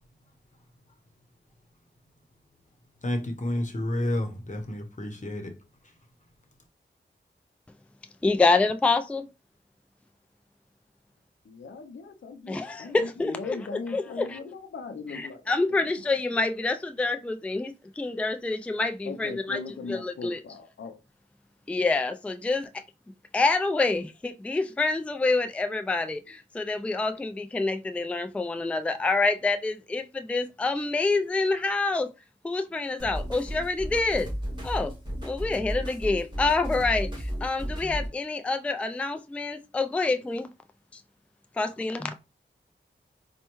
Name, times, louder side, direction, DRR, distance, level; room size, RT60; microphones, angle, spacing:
voice 1, 3.0-5.6 5.8-6.0, left 1 dB, 40° left, 0.9 m, -30 dB
voice 2, 8.2-9.3 12.5-13.6 13.9-14.4 15.1-19.6 19.9-20.4 21.7-22.7 23.3-32.1 32.4-34.3 34.6-34.9 35.2-40.5 41.6-42.1, left 3 dB, 5° left, 0.3 m, -27 dB
voice 3, 11.4-15.4 19.1-21.0, left 4 dB, 75° left, 0.5 m, -39 dB
sound 1, 33.0-38.1, equal, 25° right, 2.0 m, -34 dB
4.3 x 2.2 x 3.0 m
cardioid pair, 50°, 20 cm